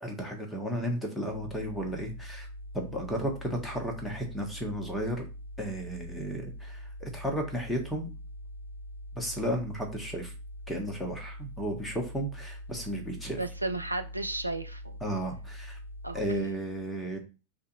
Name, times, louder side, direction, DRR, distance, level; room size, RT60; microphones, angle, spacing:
voice 1, 0.0-2.5 2.7-5.2 5.6-8.1 9.1-10.3 10.7-13.4 15.0-15.8 16.1-17.2, equal, 5° left, 1.2 m, -34 dB
sound 1, 1.3-16.4, equal, 80° left, 0.6 m, -43 dB
voice 2, 13.4-15.0 16.0-16.5, right 2 dB, 85° right, 0.4 m, -34 dB
3.4 x 2.5 x 4.3 m
figure-of-eight pair, 90°, 0 cm